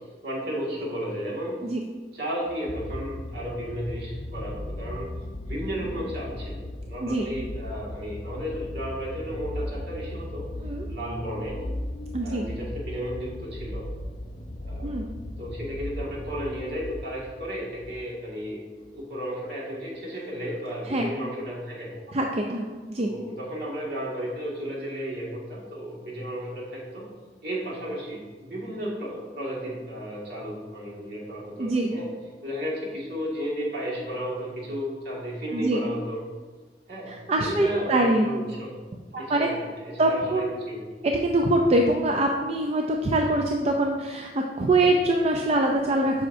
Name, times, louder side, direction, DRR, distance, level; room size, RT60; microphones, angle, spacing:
voice 1, 0.2-1.6 2.1-5.1 5.4-10.5 10.9-11.6 12.2-13.8 14.6-15.0 15.4-22.0 23.0-27.1 27.4-32.1 32.4-36.2 36.9-38.7 39.1-40.9, equal, 65° right, -4 dB, 1.9 m, -33 dB
sound 1, 2.5-18.1 18.9-19.0, left 1 dB, 35° left, 0.5 m, -37 dB
voice 2, 12.1-12.5 14.8-15.1 20.9-21.1 22.1-22.7 22.9-23.1 31.6-31.9 35.5-35.8 37.1-38.3 39.3-39.5 40.0-40.8 41.0-46.3, right 1 dB, 35° right, 2 dB, 0.4 m, -24 dB
8.1 x 5.6 x 2.6 m, 1.4 s
head